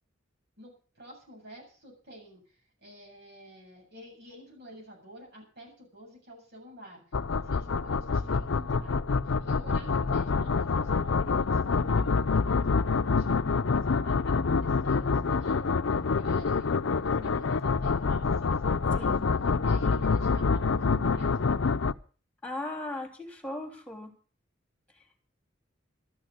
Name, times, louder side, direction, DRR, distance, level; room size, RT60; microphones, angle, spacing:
voice 1, 0.6-7.0 7.3-9.0 9.2-12.7 13.0-13.5 13.8-19.1 19.6-21.5, equal, 60° right, -1 dB, 7.9 m, -49 dB
sound 1, 7.1-21.9, left 4 dB, 80° left, 0.6 m, -26 dB
voice 2, 18.9-19.2 22.4-24.1, left 1 dB, 5° left, 5 dB, 3.5 m, -37 dB
13.0 x 12.5 x 6.7 m, 0.39 s
head